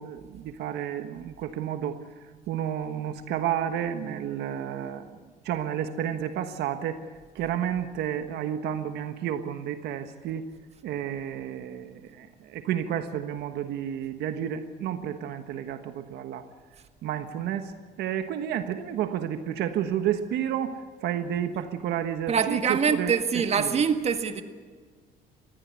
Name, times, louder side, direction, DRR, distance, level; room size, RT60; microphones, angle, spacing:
voice 1, 0.0-2.0 2.5-5.2 5.4-7.1 7.3-10.5 10.8-16.4 17.0-17.7 18.0-23.8, right 10 dB, 75° right, 9 dB, 1.4 m, -31 dB
voice 2, 22.3-24.4, right 6 dB, 40° right, 8 dB, 1.8 m, -24 dB
20.5 x 16.0 x 9.6 m, 1.5 s
cardioid pair, 110°, 17 cm